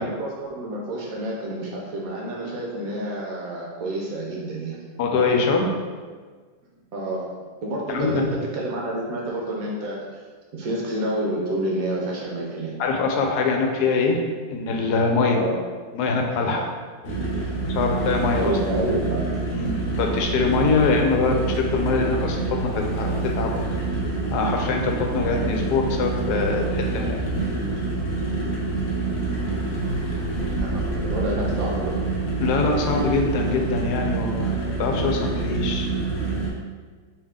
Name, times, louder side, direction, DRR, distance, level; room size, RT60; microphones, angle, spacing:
voice 1, 0.0-4.8 6.9-7.3 7.6-10.2 10.5-12.8 15.3-15.6 18.3-19.2 21.1-21.2 30.6-31.9, right 1 dB, 65° right, -3 dB, 1.0 m, -29 dB
voice 2, 5.0-5.8 7.9-8.2 12.8-14.2 14.5-15.5 15.9-16.6 17.8-18.5 19.5-21.5 21.7-23.6 24.3-27.2 32.4-35.9, left 4 dB, 80° left, 2 dB, 1.1 m, -23 dB
sound 1, 17.0-36.5, right 3 dB, 55° left, 1.0 m, -26 dB
3.5 x 2.8 x 3.5 m, 1.5 s
omnidirectional pair, 1.8 m